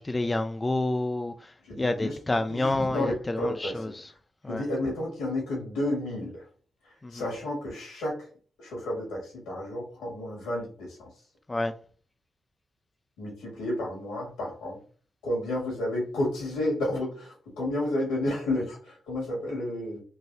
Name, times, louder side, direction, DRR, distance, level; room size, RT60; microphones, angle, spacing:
voice 1, 0.0-1.3 1.8-3.7 4.4-4.6 7.0-7.1 11.5-11.7, left 2 dB, 25° left, 0.4 m, -28 dB
voice 2, 1.6-3.8 4.5-6.4 7.1-8.2 8.6-11.1 13.2-14.8 15.2-20.0, left 1 dB, 90° left, 1.8 m, -31 dB
3.9 x 2.5 x 2.6 m
supercardioid pair, 45°, 0 cm